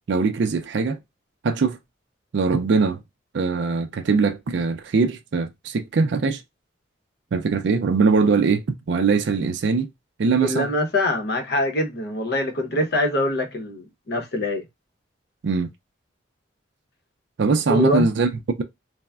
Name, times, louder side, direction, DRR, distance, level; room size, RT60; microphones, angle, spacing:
voice 1, 0.1-1.0 1.4-1.8 2.3-3.0 3.3-6.4 7.3-8.6 8.9-9.9 10.2-10.7 15.4-15.7 17.4-18.6, right 4 dB, 65° right, 0.4 m, -21 dB
voice 2, 10.4-14.6 17.7-18.1, left 1 dB, 55° left, 0.7 m, -24 dB
3.4 x 2.0 x 2.2 m
head